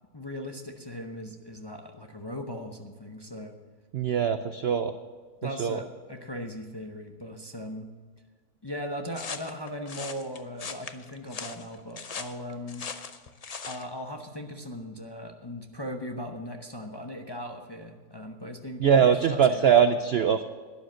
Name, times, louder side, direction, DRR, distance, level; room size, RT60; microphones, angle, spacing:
voice 1, 0.1-3.5 5.4-7.9 8.6-12.9 13.7-19.7, equal, 25° left, 3 dB, 0.6 m, -38 dB
voice 2, 3.9-4.9 5.4-5.8 18.8-20.5, right 7 dB, 70° right, 10 dB, 0.6 m, -22 dB
sound 1, 9.1-13.9, left 5 dB, 60° left, 0.4 m, -39 dB
12.0 x 10.5 x 6.3 m, 1.5 s
omnidirectional pair, 1.6 m